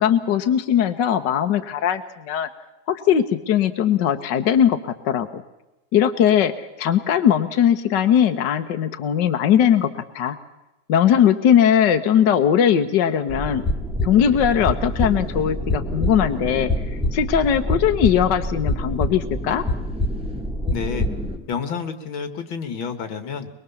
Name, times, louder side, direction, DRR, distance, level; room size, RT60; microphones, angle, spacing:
voice 1, 0.0-2.5 2.9-5.4 5.9-9.9 10.1-10.3 10.9-13.6 14.0-19.6, left 9 dB, 65° left, 7 dB, 1.6 m, -19 dB
sound 1, 13.3-21.4, left 1 dB, 5° right, 2.1 m, -26 dB
voice 2, 20.7-21.1 21.5-23.5, left 6 dB, 85° left, 9 dB, 2.4 m, -29 dB
23.0 x 22.5 x 7.1 m, 0.96 s
omnidirectional pair, 2.1 m